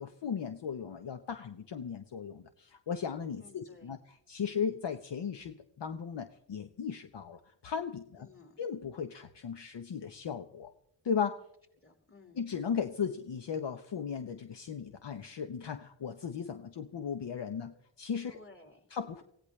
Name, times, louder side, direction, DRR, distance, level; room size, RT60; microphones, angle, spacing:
voice 1, 0.0-8.3 8.6-10.7 11.0-11.4 12.4-18.4 18.9-19.2, left 7 dB, 65° left, 7 dB, 1.2 m, -37 dB
voice 2, 3.4-3.9 8.2-8.6 11.8-12.4 18.3-18.8, left 3 dB, 30° left, 2 dB, 5.3 m, -56 dB
23.5 x 17.0 x 3.3 m, 0.77 s
cardioid pair, 60°, 46 cm